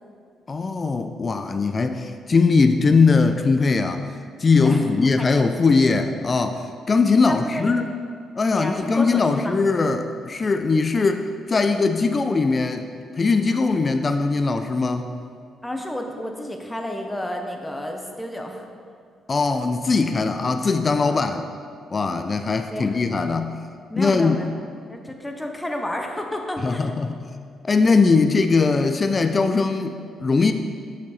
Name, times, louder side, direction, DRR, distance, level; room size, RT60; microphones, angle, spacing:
voice 1, 0.5-4.0 4.4-7.8 8.4-12.9 13.2-15.1 19.3-21.5 21.9-23.6 24.0-24.4 26.6-27.2 27.6-30.5, left 4 dB, 35° left, 7 dB, 0.4 m, -20 dB
voice 2, 4.6-5.5 7.2-7.7 8.5-9.5 15.6-18.7 21.1-21.2 22.7-23.0 23.9-24.5 24.9-26.9, left 1 dB, 10° left, 3 dB, 0.8 m, -31 dB
6.4 x 6.3 x 4.2 m, 2.3 s
cardioid pair, 90°, 0 cm